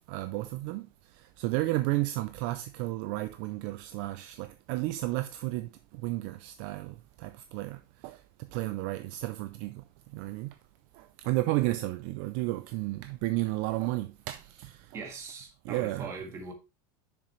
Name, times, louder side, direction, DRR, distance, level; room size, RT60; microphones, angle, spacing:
voice 1, 0.1-0.9 1.4-8.2 8.5-9.8 10.1-10.5 11.0-15.0 15.6-16.1, right 18 dB, 50° right, 0.4 m, -32 dB
voice 2, 14.9-16.5, right 4 dB, 25° right, 1.6 m, -40 dB
6.7 x 6.4 x 3.2 m
supercardioid pair, 170°, 12 cm